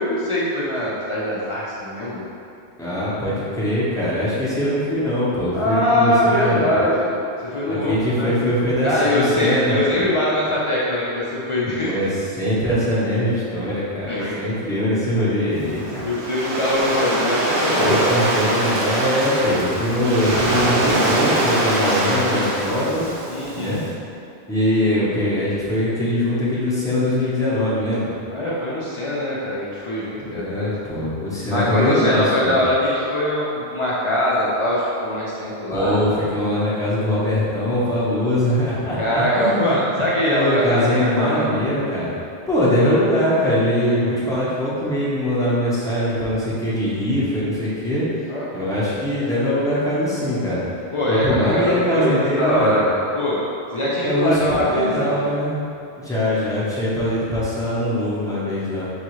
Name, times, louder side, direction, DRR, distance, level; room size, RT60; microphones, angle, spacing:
voice 1, 0.0-2.3 5.5-7.1 7.4-8.3 8.8-12.0 14.0-14.4 16.0-18.3 23.3-23.8 28.3-30.7 31.5-36.0 39.0-41.5 48.3-48.5 50.9-53.4 53.7-55.3, left 1 dB, 50° left, -7 dB, 0.3 m, -22 dB
voice 2, 2.8-6.7 7.8-9.8 11.8-12.1 12.4-16.1 17.8-23.1 23.5-23.8 24.5-28.1 30.2-32.6 35.7-39.8 40.2-42.1 42.5-48.1 48.5-50.6 51.1-52.8 54.0-55.6 56.0-58.9, left 1 dB, 5° left, -9 dB, 0.6 m, -22 dB
Waves surf, 15.5-23.8, right 1 dB, 65° right, 0.8 m, -23 dB
3.9 x 2.4 x 3.0 m, 2.6 s
omnidirectional pair, 1.1 m